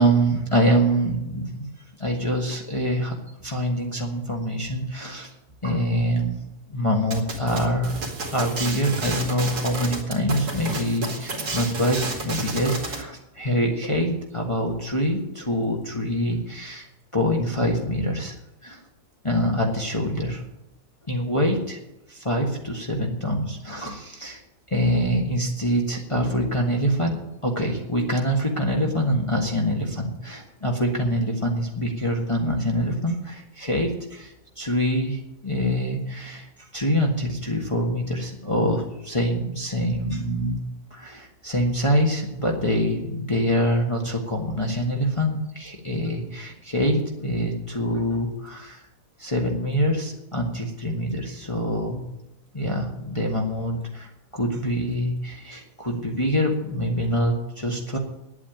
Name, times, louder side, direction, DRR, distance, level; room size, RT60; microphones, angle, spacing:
voice 1, 0.0-1.7 2.0-3.1 3.4-5.3 5.6-6.3 6.7-8.0 8.3-16.9 17.1-18.3 18.6-18.8 19.2-20.4 21.1-21.8 22.1-24.4 24.7-40.6 40.9-48.8 49.2-52.0 52.5-58.0, equal, 20° left, 0 dB, 1.6 m, -25 dB
sound 1, 7.1-13.0, right 2 dB, 75° right, 2.8 m, -31 dB
10.0 x 8.6 x 8.9 m, 0.89 s
omnidirectional pair, 1.7 m